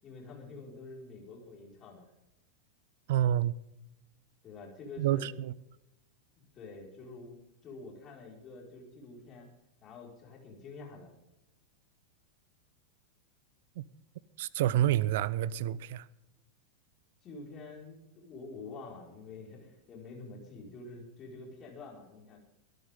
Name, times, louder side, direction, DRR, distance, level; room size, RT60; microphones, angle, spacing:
voice 1, 0.0-2.1 4.4-5.2 6.4-7.4 7.6-9.5 9.8-11.1 17.2-22.4, left 3 dB, 30° left, 5.1 m, -47 dB
voice 2, 3.1-3.5 5.0-5.5 13.8-13.9 14.4-16.0, right 12 dB, 55° right, 0.6 m, -28 dB
22.5 x 11.0 x 3.8 m
figure-of-eight pair, 90°, 0 cm